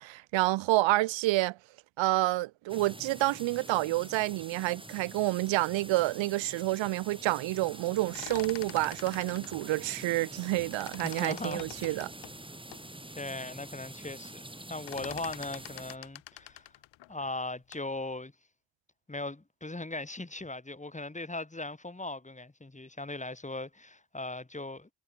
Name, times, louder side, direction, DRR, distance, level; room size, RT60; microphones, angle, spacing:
voice 1, 0.0-1.6 2.0-12.1, right 18 dB, 75° right, 1.0 m, -29 dB
sound 1, 2.7-16.0, right 1 dB, 10° right, 5.7 m, -46 dB
sound 2, 7.9-10.5 10.7-12.9 13.4-13.5 13.7-14.1 14.4-17.9, left 15 dB, 70° left, 1.5 m, -47 dB
voice 2, 11.0-12.0 13.2-14.4 14.7-16.7 17.1-18.3 19.1-24.9, left 2 dB, 15° left, 4.3 m, -39 dB
hypercardioid pair, 50°, 46 cm